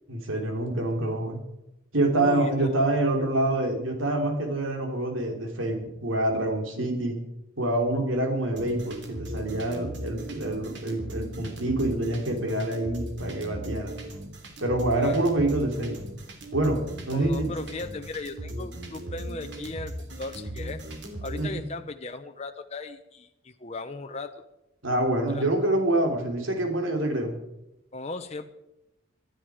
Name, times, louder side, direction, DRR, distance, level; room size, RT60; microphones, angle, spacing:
voice 1, 0.1-1.4 1.9-7.2 7.6-13.9 14.6-16.0 16.5-16.8 17.1-17.5 21.4-21.5 24.8-27.4, right 1 dB, 90° right, 3 dB, 3.5 m, -26 dB
voice 2, 2.1-2.9 14.9-15.2 17.1-20.8 21.2-24.4 25.3-25.4 27.9-28.5, left 3 dB, 35° left, 6 dB, 0.8 m, -37 dB
sound 1, 8.6-21.4, right 1 dB, 60° right, 3.1 m, -38 dB
20.0 x 13.0 x 5.0 m, 0.89 s
head